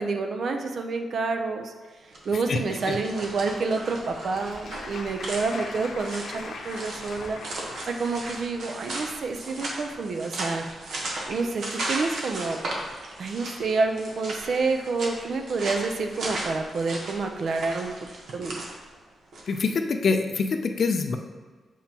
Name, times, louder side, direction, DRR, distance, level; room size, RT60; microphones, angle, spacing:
voice 1, 0.0-1.7 2.2-10.7 11.3-12.6 13.2-17.9 18.3-18.6, right 3 dB, 60° right, 5 dB, 0.6 m, -28 dB
sound 1, 2.0-19.7, right 2 dB, 75° right, 1.1 m, -36 dB
Applause, 3.6-8.5, left 3 dB, 70° left, 0.8 m, -41 dB
voice 2, 19.5-21.2, left 4 dB, 55° left, 6 dB, 0.5 m, -25 dB
7.1 x 4.5 x 2.9 m, 1.4 s
cardioid pair, 120°, 0 cm